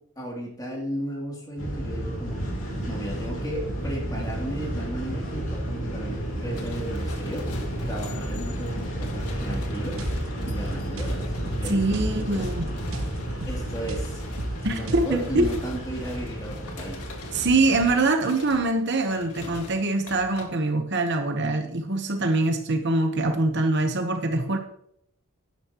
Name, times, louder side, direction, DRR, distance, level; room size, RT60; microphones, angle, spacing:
voice 1, 0.2-2.4 2.8-7.5 7.8-10.0 10.5-11.3 11.6-12.5 13.5-14.2 14.7-17.0, right 1 dB, 15° left, -1 dB, 2.8 m, -35 dB
sound 1, 1.6-18.0, equal, 65° left, 3.1 m, -32 dB
sound 2, 6.5-20.5, left 3 dB, 85° left, 1.9 m, -45 dB
sound 3, 9.3-15.6, right 1 dB, 65° right, 1.3 m, -35 dB
voice 2, 11.6-12.7 14.6-15.5 17.3-24.6, right 2 dB, 50° right, 6 dB, 1.0 m, -24 dB
12.0 x 10.5 x 3.0 m, 0.72 s
head